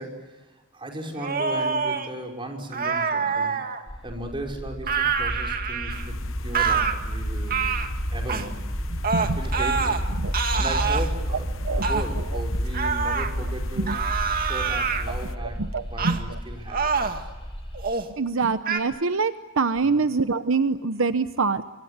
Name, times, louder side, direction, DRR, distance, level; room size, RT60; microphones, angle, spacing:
voice 1, 0.0-3.6 4.0-7.7 8.1-8.7 9.1-10.0 10.5-14.0 14.4-15.6 15.9-17.3 19.9-20.1, right 1 dB, 25° right, 1 dB, 5.4 m, -36 dB
sound 1, 1.2-2.1 2.7-3.8 4.8-6.1 6.5-6.9 7.5-7.9 8.3-8.5 9.0-10.0 10.3-11.1 11.8-12.1 12.7-13.3 13.9-15.0 16.0-16.2 16.7-17.2 17.7-18.1 18.6-18.8, right 5 dB, 45° right, 2.2 m, -26 dB
sound 2, 3.9-17.8, equal, 25° left, 6.8 m, -31 dB
sound 3, 5.9-15.3, left 2 dB, 70° left, 1.0 m, -39 dB
voice 2, 8.9-9.4 10.2-10.3 11.6-11.9 13.8-14.0 15.7-16.2 18.2-21.6, right 4 dB, 75° right, 11 dB, 0.9 m, -25 dB
27.0 x 25.0 x 8.2 m, 1.2 s
head